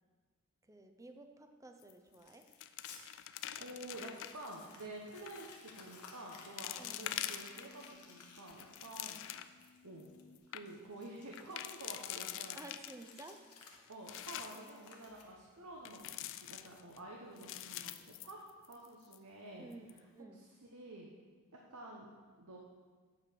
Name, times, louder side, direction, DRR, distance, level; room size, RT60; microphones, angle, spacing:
voice 1, 0.6-2.5 6.7-7.0 12.5-13.4 14.6-14.7 19.6-20.4, right 2 dB, 15° right, 6 dB, 0.5 m, -53 dB
sound 1, 1.8-2.2 2.4-4.5 5.2-5.5 6.1-6.2 6.6-7.9 8.4-9.7 10.1-10.2 10.4-10.6 11.3-13.2 13.7-14.7 15.9-17.0 17.4-18.9 19.1-19.2 19.7-20.0, left 12 dB, 60° left, 0.4 m, -44 dB
Crumpling crinkling, 2.2-3.0 3.5-3.6 3.8-15.5, left 5 dB, 80° left, 1.1 m, -58 dB
voice 2, 3.6-10.1 10.5-12.6 13.9-16.0 16.5-18.4 18.6-19.7 20.3-21.1 21.5-22.6, right 1 dB, 80° right, -1 dB, 1.0 m, -50 dB
sound 2, 6.0-10.4, left 5 dB, 30° left, 1.1 m, -66 dB
8.3 x 4.8 x 6.9 m, 1.5 s
head